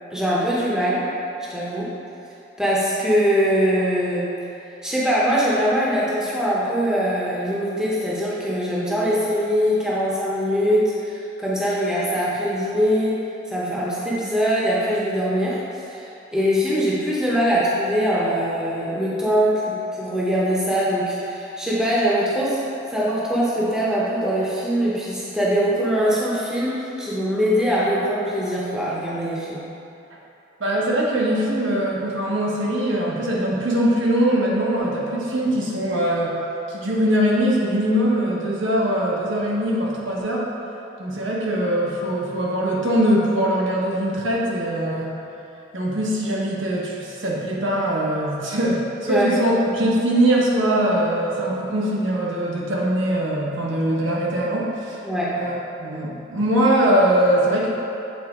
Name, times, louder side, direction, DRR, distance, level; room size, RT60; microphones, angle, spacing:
voice 1, 0.1-1.0 1.5-1.9 2.6-4.3 4.8-13.2 13.5-15.6 15.9-22.6 22.9-29.6 49.1-49.3 55.0-55.4, equal, 5° right, -7 dB, 0.8 m, -22 dB
voice 2, 30.6-36.3 36.7-40.5 41.0-45.2 45.7-55.0 55.4-57.7, right 1 dB, 75° right, -5 dB, 1.1 m, -22 dB
7.6 x 4.0 x 3.6 m, 2.8 s
head